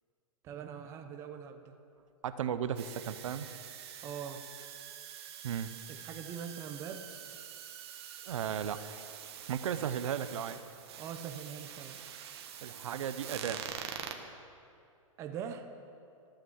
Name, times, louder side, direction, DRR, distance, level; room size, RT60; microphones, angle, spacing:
voice 1, 0.4-1.8 4.0-4.5 5.9-7.1 11.0-12.0 15.2-15.7, right 8 dB, 15° right, 6 dB, 0.6 m, -42 dB
voice 2, 2.2-3.5 5.4-5.7 8.2-8.8 9.5-10.6 12.6-13.6, right 9 dB, 65° right, 11 dB, 0.8 m, -35 dB
sound 1, 2.8-14.2, right 9 dB, 50° right, 1.3 m, -46 dB
14.0 x 8.9 x 7.4 m, 2.5 s
hypercardioid pair, 155°, 17 cm